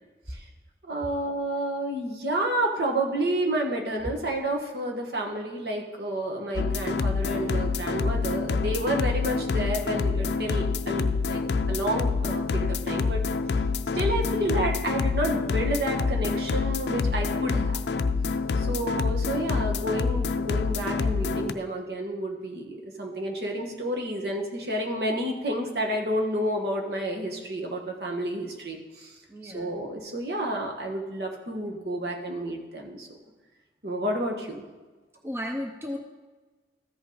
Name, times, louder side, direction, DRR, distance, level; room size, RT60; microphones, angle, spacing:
voice 1, 0.8-11.4 11.7-13.2 13.9-17.8 18.6-29.1 29.4-33.2 33.8-34.6, right 1 dB, 65° right, 0 dB, 1.3 m, -30 dB
sound 1, 6.6-21.5, left 4 dB, 75° left, 0.4 m, -27 dB
voice 2, 29.3-29.8 35.2-36.0, left 1 dB, 15° right, 3 dB, 0.5 m, -34 dB
14.0 x 5.4 x 3.9 m, 1.3 s
head